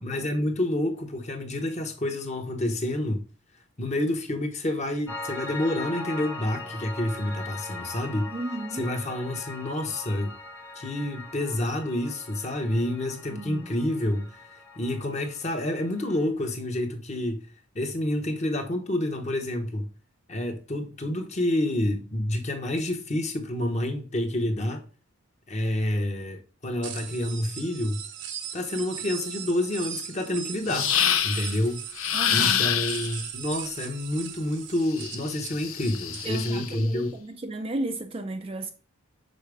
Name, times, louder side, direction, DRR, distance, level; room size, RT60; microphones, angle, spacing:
voice 1, 0.0-3.2 3.8-8.3 8.7-10.3 10.8-14.4 14.8-17.4 17.7-19.9 20.3-24.8 25.5-28.0 28.5-30.9 31.2-31.8 32.3-37.1, left 1 dB, 30° left, 1.0 m, -28 dB
Piano, 5.1-16.3, left 2 dB, 10° left, 0.8 m, -41 dB
voice 2, 8.3-8.9 13.3-13.7 32.1-32.7 36.2-38.7, right 2 dB, 25° right, 0.4 m, -34 dB
sound 1, 26.8-36.3, right 9 dB, 55° right, 0.7 m, -39 dB
sound 2, 30.7-31.6 32.0-33.2 34.9-36.8, left 9 dB, 75° left, 0.7 m, -27 dB
6.4 x 4.5 x 3.5 m
head